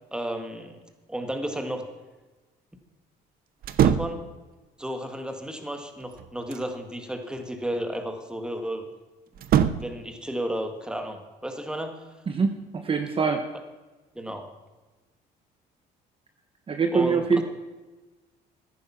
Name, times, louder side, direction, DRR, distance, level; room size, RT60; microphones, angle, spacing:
voice 1, 0.1-0.8 1.1-1.8 3.8-4.2 4.8-8.9 9.7-12.0 14.2-14.5 16.9-17.4, equal, 5° right, 5 dB, 1.9 m, -33 dB
sound 1, 3.6-4.3 5.9-6.7 9.3-10.0, right 9 dB, 60° right, 0.8 m, -24 dB
voice 2, 12.3-13.4 16.7-17.4, right 5 dB, 30° right, 6 dB, 1.1 m, -24 dB
14.5 x 10.0 x 5.8 m, 1.2 s
cardioid pair, 110°, 17 cm